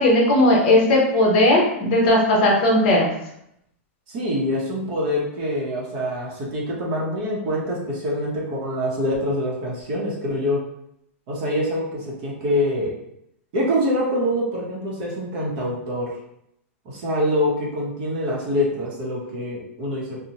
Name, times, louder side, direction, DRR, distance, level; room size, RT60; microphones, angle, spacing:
voice 1, 0.0-3.1, left 1 dB, 40° left, -2 dB, 0.8 m, -17 dB
voice 2, 4.1-10.6 11.3-12.9 13.5-16.1 16.8-20.2, equal, 35° right, -4 dB, 0.7 m, -25 dB
2.8 x 2.0 x 2.8 m, 0.76 s
supercardioid pair, 170°, 7 cm